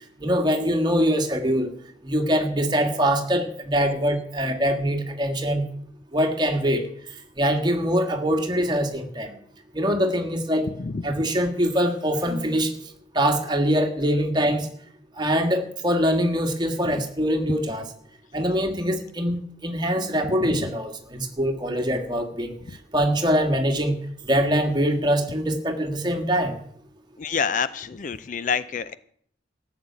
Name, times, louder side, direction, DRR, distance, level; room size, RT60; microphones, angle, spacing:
voice 1, 0.2-1.7 2.0-5.6 6.1-6.8 7.4-9.4 9.7-10.7 11.0-12.7 13.1-14.7 15.2-17.9 18.3-22.5 22.9-24.0 24.2-26.6, equal, 25° right, 5 dB, 1.7 m, -23 dB
voice 2, 27.2-29.0, left 6 dB, 40° left, 15 dB, 0.5 m, -27 dB
14.0 x 7.1 x 9.4 m, 0.63 s
head